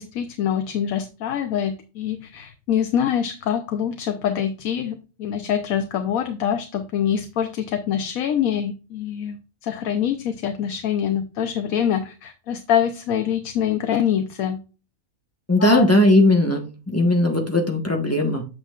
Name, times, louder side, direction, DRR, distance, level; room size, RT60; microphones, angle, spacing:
voice 1, 0.0-9.4 9.6-14.6 15.6-15.9, left 9 dB, 90° left, 7 dB, 1.2 m, -25 dB
voice 2, 15.5-18.5, left 1 dB, 10° left, 2 dB, 1.1 m, -18 dB
7.7 x 6.3 x 2.4 m, 0.33 s
omnidirectional pair, 1.4 m